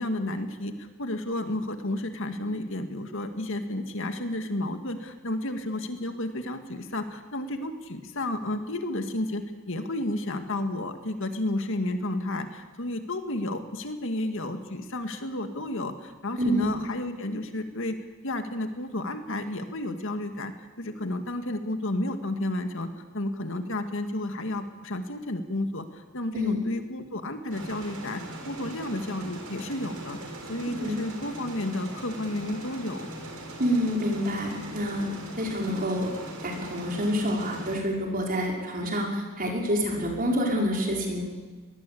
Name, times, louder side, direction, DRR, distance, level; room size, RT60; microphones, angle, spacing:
voice 1, 0.0-18.0 18.2-30.2 30.5-33.1, left 1 dB, 60° left, 7 dB, 2.1 m, -32 dB
voice 2, 16.4-16.7 26.3-26.6 30.7-31.0 33.6-35.1 35.4-36.1 36.4-41.2, equal, 40° right, 0 dB, 5.5 m, -27 dB
sound 1, 27.5-37.8, right 1 dB, 85° right, 5.9 m, -40 dB
23.5 x 19.5 x 8.6 m, 1.4 s
head